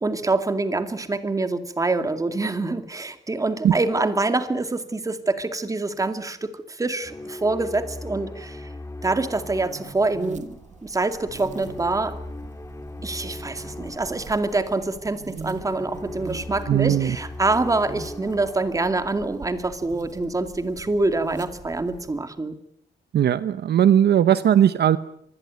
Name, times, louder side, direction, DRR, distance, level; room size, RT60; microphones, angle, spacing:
voice 1, 0.0-8.7 9.0-10.6 10.8-12.2 13.0-22.6, right 3 dB, 15° right, 9 dB, 2.2 m, -25 dB
sound 1, 7.0-20.1, left 2 dB, 15° left, 2.3 m, -39 dB
sound 2, 9.3-22.2, right 4 dB, 40° right, 2.2 m, -43 dB
voice 2, 16.7-17.2 23.1-25.0, right 10 dB, 60° right, 14 dB, 1.0 m, -18 dB
25.0 x 21.0 x 9.4 m, 0.71 s
cardioid pair, 140°, 19 cm